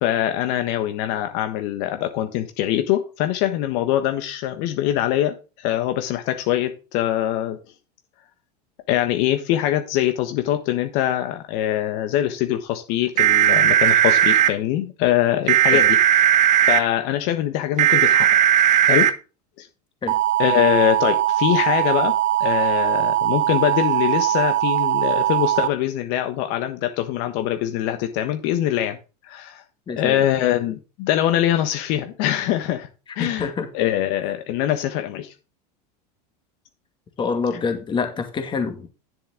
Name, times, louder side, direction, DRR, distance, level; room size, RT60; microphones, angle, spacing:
voice 1, 0.0-7.6 8.9-15.9 16.7-18.3 18.9-19.1 19.6-19.7 20.4-22.1 22.4-29.0 29.2-29.6 30.0-32.9 33.2-33.5 33.7-35.3, left 12 dB, 55° left, 7 dB, 1.3 m, -23 dB
sound 1, 13.2-14.5 15.5-16.8 17.8-19.1 20.1-25.7, right 11 dB, 35° right, 1.0 m, -18 dB
voice 2, 29.9-30.3 33.2-33.7 37.2-38.9, left 5 dB, 25° left, 6 dB, 2.2 m, -26 dB
10.5 x 7.1 x 3.8 m, 0.32 s
supercardioid pair, 120°, 21 cm